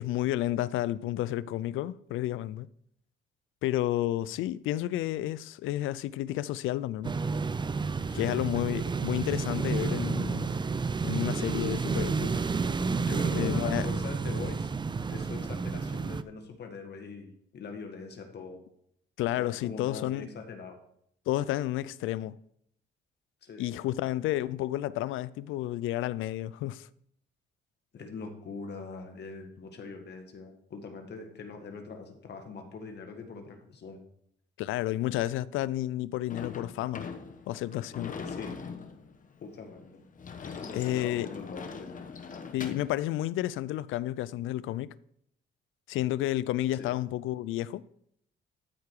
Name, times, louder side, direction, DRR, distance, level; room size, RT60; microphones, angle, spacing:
voice 1, 0.0-2.7 3.6-7.1 8.1-10.5 11.0-12.3 13.3-13.9 19.2-20.3 21.3-22.4 23.6-26.9 34.6-37.1 37.5-38.1 40.7-41.3 42.5-44.9 45.9-47.8, left 14 dB, 85° left, 0.4 m, -31 dB
sound 1, 7.0-16.2, right 4 dB, 25° right, 0.5 m, -30 dB
voice 2, 8.1-8.4 12.9-14.7 15.1-18.6 19.3-20.8 23.4-23.7 27.9-34.0 38.2-38.5 39.4-40.0 40.4-42.0 46.8-46.9, left 4 dB, 60° left, 1.8 m, -42 dB
Sliding door / Slam, 36.3-43.0, left 5 dB, 40° left, 1.1 m, -42 dB
13.0 x 4.9 x 4.7 m
cardioid pair, 90°, 20 cm